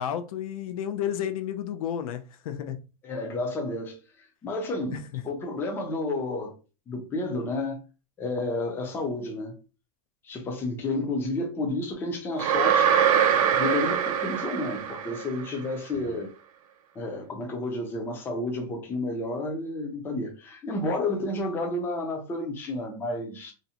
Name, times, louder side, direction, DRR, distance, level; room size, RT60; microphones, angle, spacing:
voice 1, 0.0-2.8, left 9 dB, 80° left, 0.4 m, -31 dB
voice 2, 3.0-4.0 4.4-6.5 6.9-7.8 8.2-9.6 10.2-12.9 13.6-16.3 17.0-23.5, left 2 dB, 10° left, 0.4 m, -31 dB
sound 1, 12.4-15.5, right 8 dB, 80° right, 0.4 m, -23 dB
2.5 x 2.0 x 2.7 m
supercardioid pair, 160°, 18 cm